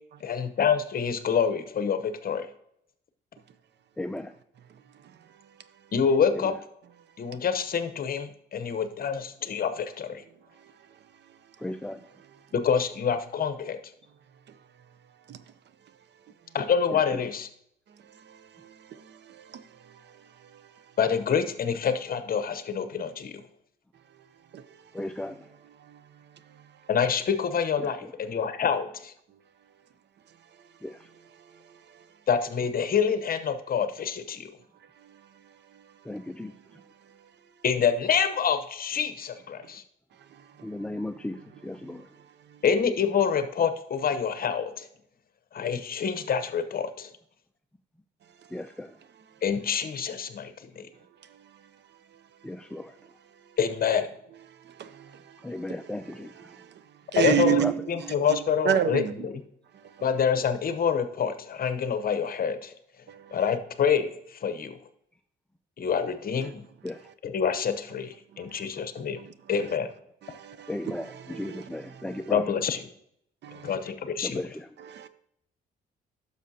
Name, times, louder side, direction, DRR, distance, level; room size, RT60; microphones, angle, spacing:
voice 1, 0.2-2.5 5.9-6.6 7.2-10.2 12.5-13.8 16.5-17.5 21.0-23.3 26.9-29.1 32.3-34.5 37.6-39.8 42.6-44.9 45.5-47.1 49.4-50.9 53.6-54.1 57.2-57.6 57.9-59.4 60.0-62.7 63.3-64.8 65.8-66.6 67.2-69.2 69.5-69.9 72.3-72.9 73.5-74.4, left 7 dB, 50° left, 0.8 m, -27 dB
voice 2, 4.0-4.3 11.6-12.0 24.9-25.3 30.8-30.9 36.1-36.5 40.6-41.4 41.6-42.0 48.5-48.9 52.4-52.9 55.4-56.3 57.4-57.7 66.8-67.0 70.7-72.4 74.2-74.6, left 1 dB, 5° left, 0.3 m, -34 dB
voice 3, 19.1-19.6 24.5-24.6 54.8-55.1 56.1-56.6 57.1-58.2 58.6-59.1 63.1-63.2 68.4-68.5 69.2-69.3 70.2-72.3 73.4-73.7 74.8-75.1, right 10 dB, 60° right, 0.6 m, -30 dB
10.0 x 6.5 x 2.8 m
cardioid pair, 90°, 20 cm